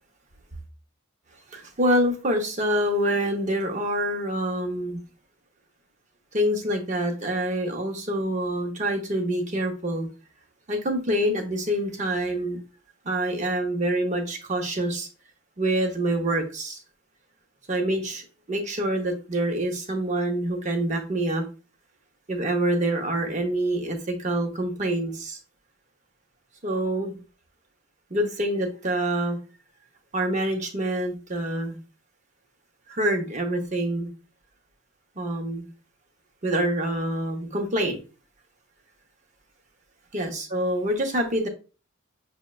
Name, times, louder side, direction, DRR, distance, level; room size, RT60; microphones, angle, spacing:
voice 1, 1.5-5.0 6.3-10.1 10.7-12.6 13.1-15.1 15.6-16.8 17.7-21.4 22.3-25.4 26.6-27.2 28.1-29.4 30.1-31.8 32.9-34.1 35.2-35.6 36.4-38.0 40.1-41.5, right 1 dB, 35° right, 0.7 m, -26 dB
6.3 x 2.1 x 2.2 m
head